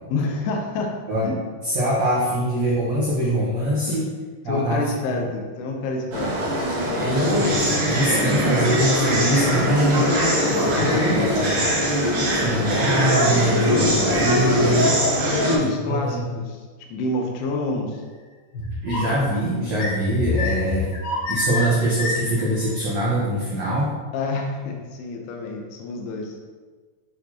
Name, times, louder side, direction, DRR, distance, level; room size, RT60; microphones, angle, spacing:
voice 1, 0.1-0.9 1.2-1.4 3.9-4.0 4.5-6.4 10.5-11.1 12.3-12.8 15.2-16.6 16.9-18.0 19.0-19.2 24.1-26.4, left 3 dB, 80° left, 1 dB, 2.7 m, -28 dB
voice 2, 1.6-4.1 4.4-4.8 7.0-10.0 10.7-11.7 12.4-14.9 15.6-16.2 18.8-20.9 21.3-23.9, right 1 dB, 80° right, -6 dB, 1.5 m, -23 dB
sound 1, 6.1-15.6, equal, 55° right, 1.4 m, -21 dB
sound 2, 18.5-19.2 19.7-22.5, left 2 dB, 65° left, 2.9 m, -27 dB
9.1 x 4.3 x 2.8 m, 1.4 s
omnidirectional pair, 4.6 m